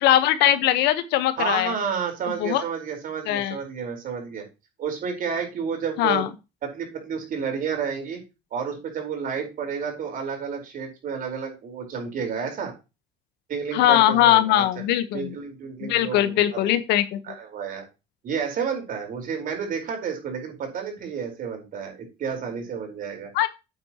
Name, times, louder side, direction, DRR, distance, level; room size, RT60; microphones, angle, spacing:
voice 1, 0.0-1.7 2.4-2.6 3.3-3.6 6.0-6.3 13.7-15.3 15.8-17.2 23.3-23.5, left 13 dB, 85° left, 12 dB, 1.2 m, -20 dB
voice 2, 1.4-4.4 4.8-6.2 6.6-8.2 8.5-12.7 13.5-14.6 15.1-16.7 17.2-17.8 18.2-23.3, right 6 dB, 55° right, 3 dB, 4.4 m, -31 dB
8.7 x 8.7 x 3.0 m, 0.27 s
cardioid pair, 115°, 17 cm